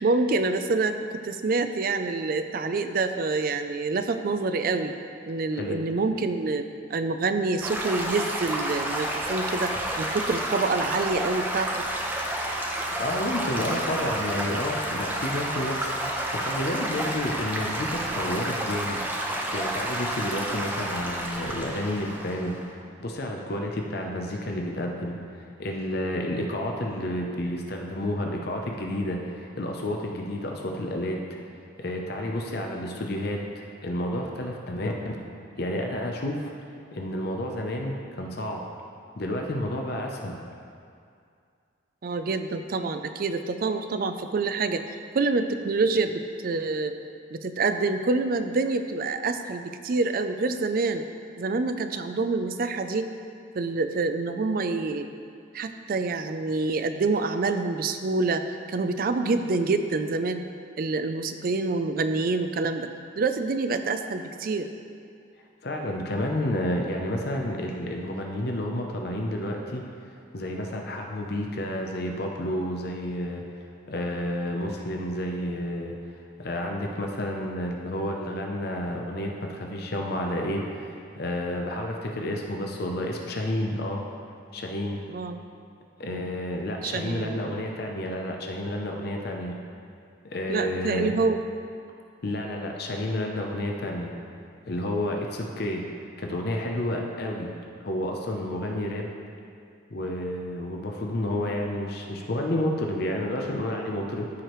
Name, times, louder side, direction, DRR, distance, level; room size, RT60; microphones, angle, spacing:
voice 1, 0.0-5.0 5.2-6.6 6.9-11.8 42.0-44.8 45.1-46.9 47.3-51.0 51.4-53.1 53.5-55.1 55.5-58.4 58.7-60.5 60.8-62.9 63.2-64.7 85.1-85.4 86.0-86.4 86.8-87.6 90.5-91.4 98.7-99.0, right 3 dB, 45° right, 8 dB, 0.4 m, -27 dB
Stream / Gurgling / Trickle dribble, 7.6-22.7, right 1 dB, 10° right, 0.7 m, -30 dB
voice 2, 12.9-19.0 19.5-31.2 31.8-35.2 35.6-36.5 36.9-38.6 39.2-40.4 65.6-69.8 70.3-73.4 73.9-75.9 76.4-84.1 84.5-85.0 86.0-89.6 90.2-91.1 92.2-94.1 94.7-95.8 96.2-97.5 97.8-99.1 99.9-104.3, left 1 dB, 55° left, 1 dB, 0.6 m, -30 dB
13.5 x 4.9 x 3.1 m, 2.4 s
head